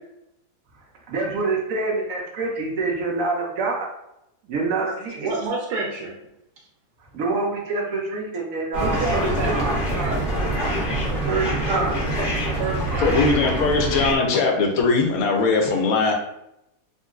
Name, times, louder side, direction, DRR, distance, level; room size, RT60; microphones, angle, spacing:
voice 1, 1.1-3.9 4.5-5.3 7.1-9.7 11.3-12.0, right 3 dB, 65° right, -1 dB, 0.9 m, -26 dB
voice 2, 4.8-6.1 8.8-9.5 9.9-11.5 12.1-12.2 12.6-13.2, right 3 dB, 85° right, -3 dB, 1.2 m, -30 dB
sound 1, 8.7-14.1, right 1 dB, 40° left, 0.7 m, -25 dB
voice 3, 13.0-16.1, left 4 dB, 70° left, 2 dB, 1.0 m, -20 dB
3.7 x 2.1 x 2.4 m, 0.82 s
omnidirectional pair, 1.7 m